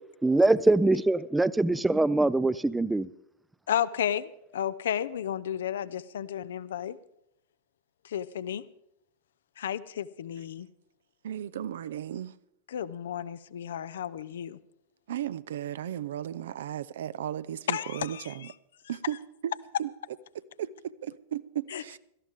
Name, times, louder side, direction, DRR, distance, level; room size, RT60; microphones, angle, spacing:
voice 1, 0.2-3.1, right 2 dB, 5° right, 0.5 m, -23 dB
voice 2, 3.7-7.0 8.0-8.6 9.6-10.7 12.7-14.6 17.7-18.5 21.7-22.0, left 9 dB, 60° left, 0.5 m, -33 dB
voice 3, 11.2-12.3 15.1-18.5 18.9-19.2 19.4-19.5 19.8-19.9 20.6-22.0, right 10 dB, 60° right, 0.5 m, -35 dB
18.0 x 13.5 x 3.6 m
figure-of-eight pair, 90°, 0 cm